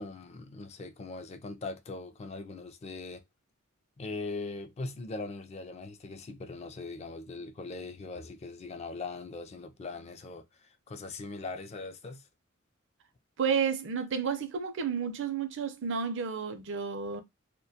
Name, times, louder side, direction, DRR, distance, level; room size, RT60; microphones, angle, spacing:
voice 1, 0.0-3.2 4.0-12.3, left 3 dB, 30° left, 0.3 m, -40 dB
voice 2, 13.4-17.2, right 6 dB, 60° right, 0.5 m, -31 dB
2.2 x 2.1 x 2.7 m
head